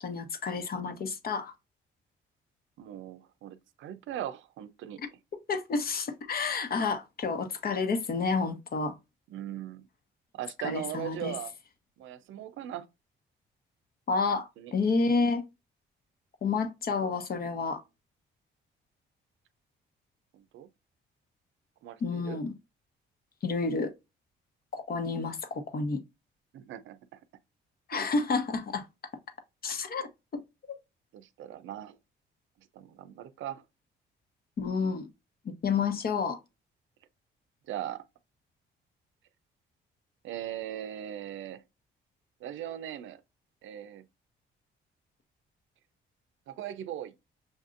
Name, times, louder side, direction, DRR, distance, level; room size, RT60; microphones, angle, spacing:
voice 1, 0.0-1.5 5.0-5.1 5.5-9.0 10.6-11.3 14.1-15.4 16.4-17.8 22.0-22.5 23.4-23.9 24.7-26.0 27.9-28.8 29.6-30.1 30.3-30.4 30.7-30.8 34.6-35.1 35.4-36.4, left 4 dB, 50° left, 0.9 m, -30 dB
voice 2, 2.8-5.0 9.3-9.8 10.3-11.5 12.0-12.9 14.6-14.7 20.3-20.7 21.8-22.4 26.5-27.0 27.9-28.1 31.1-32.0 32.7-33.6 37.7-38.0 40.2-41.6 42.4-43.2 43.6-44.0 46.5-47.1, right 11 dB, 75° right, 0.6 m, -39 dB
6.4 x 2.6 x 2.5 m
cardioid pair, 90°, 20 cm